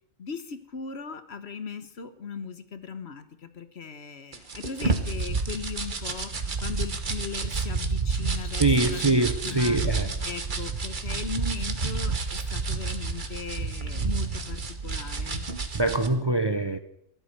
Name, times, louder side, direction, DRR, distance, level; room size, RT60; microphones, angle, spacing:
voice 1, 0.2-9.8 10.2-15.5, left 5 dB, 55° left, 1.3 m, -38 dB
sound 1, 4.3-16.1, right 4 dB, 40° right, 1.4 m, -30 dB
voice 2, 8.4-10.1 15.7-16.8, right 2 dB, 25° right, 0.7 m, -24 dB
14.0 x 12.0 x 6.7 m
omnidirectional pair, 1.3 m